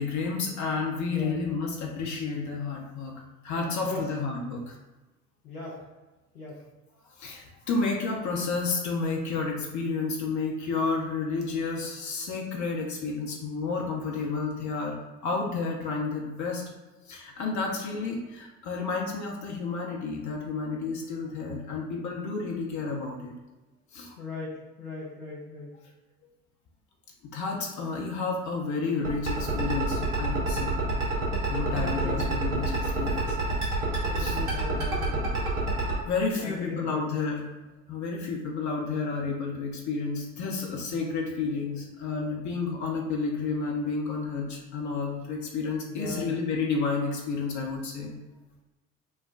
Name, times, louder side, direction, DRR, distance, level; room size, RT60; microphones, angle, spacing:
voice 1, 0.0-3.1 3.4-4.8 7.2-15.0 15.2-16.6 17.1-23.3 23.9-24.1 27.3-30.9 31.5-34.4 36.1-37.4 37.9-48.1, left 4 dB, 40° left, -1 dB, 0.8 m, -31 dB
voice 2, 1.1-1.4 3.8-4.1 5.4-5.8 6.3-6.6 24.2-25.7 31.8-32.4 34.0-35.3 36.4-37.0 45.9-46.4, left 3 dB, 80° left, -7 dB, 0.8 m, -38 dB
sound 1, 29.0-35.9, right 3 dB, 80° right, 1.1 m, -28 dB
5.5 x 2.2 x 2.5 m, 1.1 s
figure-of-eight pair, 60°, 43 cm